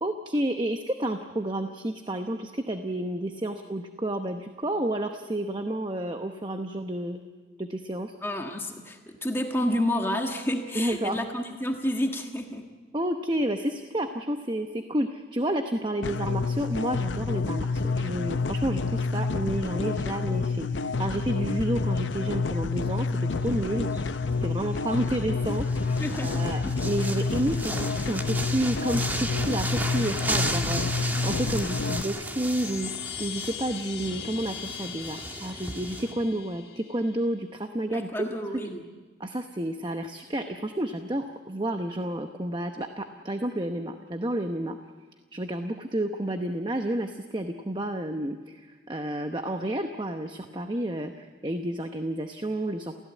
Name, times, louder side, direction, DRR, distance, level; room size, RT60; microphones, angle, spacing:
voice 1, 0.0-7.2 7.6-8.1 10.7-11.3 12.9-23.9 24.4-38.3 38.5-38.6 39.2-44.8 45.3-52.9, right 1 dB, 25° right, 6 dB, 0.9 m, -30 dB
voice 2, 8.2-12.7 26.0-26.5 37.9-38.8, left 1 dB, 15° left, 2 dB, 1.5 m, -30 dB
sound 1, 16.0-32.0, left 4 dB, 85° left, 0.6 m, -28 dB
sound 2, 23.4-36.1, right 1 dB, 10° right, 1.6 m, -35 dB
sound 3, 32.2-37.3, left 11 dB, 60° left, 1.7 m, -40 dB
28.5 x 16.5 x 8.4 m, 1.4 s
head